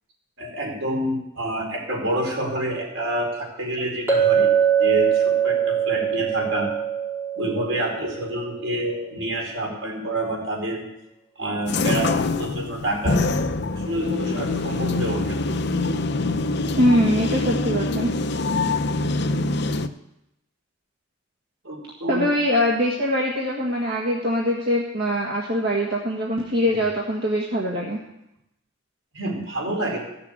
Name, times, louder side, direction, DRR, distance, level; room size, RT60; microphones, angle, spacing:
voice 1, 0.4-4.5 4.8-6.7 7.4-10.8 11.4-13.2 13.8-15.5 21.6-22.3 26.7-26.8 29.1-30.0, right 1 dB, 70° right, -1 dB, 4.6 m, -28 dB
Chink clink, 4.1-8.2, right 8 dB, 15° right, 4.4 m, -22 dB
sound 1, 11.7-19.9, left 3 dB, 55° left, 0.7 m, -24 dB
voice 2, 16.8-18.1 22.1-28.0, equal, 50° right, -3 dB, 1.7 m, -23 dB
15.5 x 7.0 x 8.5 m, 0.87 s
head